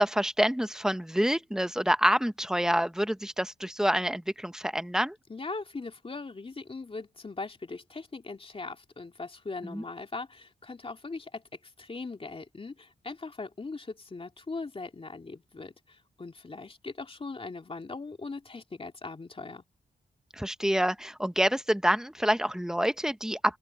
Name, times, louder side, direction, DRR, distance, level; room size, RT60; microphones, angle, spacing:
voice 1, 0.0-5.2 9.6-9.8 20.3-23.6, equal, 5° right, 1.1 m, -27 dB
voice 2, 5.3-19.6, left 3 dB, 30° left, 2.8 m, -40 dB
open air
cardioid pair, 70°, 17 cm